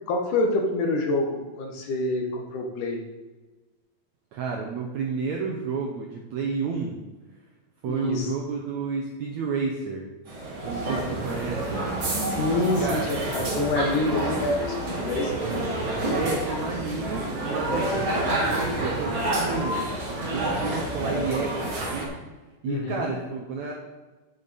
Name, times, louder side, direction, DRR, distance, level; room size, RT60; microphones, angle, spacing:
voice 1, 0.1-3.0 7.9-8.3 12.3-15.3 22.7-23.1, left 2 dB, 65° left, 1 dB, 2.5 m, -27 dB
voice 2, 4.3-7.0 7.8-10.0 10.6-11.8 12.8-13.2 16.1-19.8 20.3-22.1 22.6-23.8, right 5 dB, 75° right, 0 dB, 1.7 m, -31 dB
sound 1, 10.3-22.1, right 1 dB, 40° right, 2.3 m, -28 dB
sound 2, 11.0-21.1, right 3 dB, 55° right, 3.0 m, -41 dB
8.8 x 8.6 x 4.1 m, 1.2 s
omnidirectional pair, 4.3 m